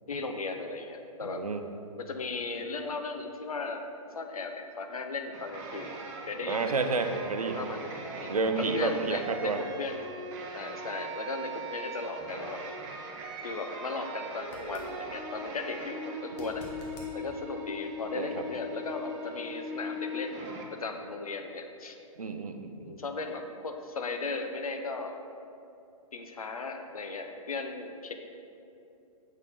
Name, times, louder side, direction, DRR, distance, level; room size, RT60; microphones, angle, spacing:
voice 1, 0.1-1.4 2.1-3.8 4.1-6.0 6.3-6.7 7.5-7.8 8.2-10.0 10.5-12.6 13.4-16.6 17.1-20.5 20.8-22.0 22.9-25.2 26.1-28.1, left 3 dB, 80° left, 5 dB, 0.6 m, -36 dB
voice 2, 1.2-1.6 6.5-7.6 8.3-9.6 18.1-18.4 22.2-23.0, right 3 dB, 90° right, 7 dB, 0.5 m, -30 dB
sound 1, 5.3-20.6, right 1 dB, 30° right, 0.6 m, -40 dB
sound 2, 14.4-14.9 16.3-17.1 20.1-20.2, left 1 dB, 50° left, 1.2 m, -49 dB
6.2 x 3.7 x 4.1 m, 2.7 s
figure-of-eight pair, 120°, 18 cm